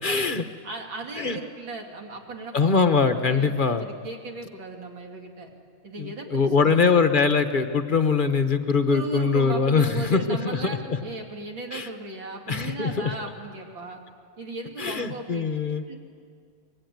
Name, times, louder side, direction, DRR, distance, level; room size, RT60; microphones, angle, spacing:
voice 1, 0.0-0.4 1.2-1.4 2.5-3.9 6.0-11.0 11.7-11.9 12.5-13.1 14.8-15.8, left 5 dB, 45° left, 8 dB, 0.6 m, -22 dB
voice 2, 0.6-2.9 3.3-5.5 5.8-7.0 8.9-14.0 14.4-15.5 15.9-16.0, right 2 dB, 70° right, 1 dB, 3.6 m, -37 dB
25.5 x 22.5 x 9.3 m, 2.2 s
omnidirectional pair, 2.2 m